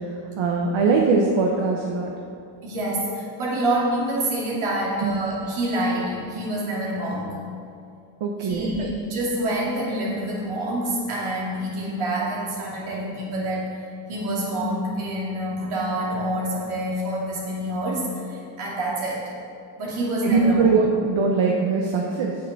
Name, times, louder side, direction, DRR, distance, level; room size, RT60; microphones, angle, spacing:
voice 1, 0.4-2.1 5.0-5.2 8.2-8.9 20.2-22.4, right 4 dB, 70° right, 0 dB, 1.2 m, -21 dB
voice 2, 2.6-7.3 8.4-13.7 14.1-19.3 19.8-20.7, right 1 dB, 85° right, -5 dB, 2.7 m, -27 dB
8.2 x 7.1 x 6.7 m, 2.5 s
cardioid pair, 65°, 48 cm